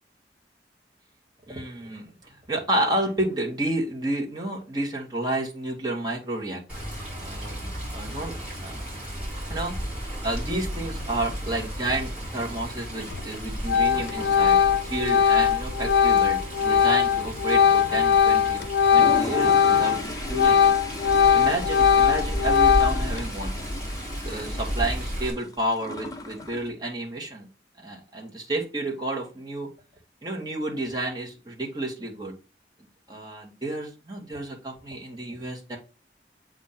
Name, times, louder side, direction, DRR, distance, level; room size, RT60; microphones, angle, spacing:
voice 1, 1.5-6.6 7.2-7.7 7.9-8.8 9.5-9.7 10.2-18.6 18.9-20.0 20.3-20.6 21.3-23.5 24.2-27.5 27.8-29.7 30.2-32.3 33.1-35.8, right 1 dB, 25° right, -2 dB, 1.3 m, -30 dB
Water, 6.7-25.3, equal, 5° right, 2.6 m, -33 dB
Organ, 13.1-13.4 13.7-20.0 20.3-23.2, left 7 dB, 80° left, 0.4 m, -20 dB
Toilet flush, 18.8-26.7, left 2 dB, 20° left, 0.6 m, -37 dB
7.1 x 2.5 x 5.7 m, 0.33 s
head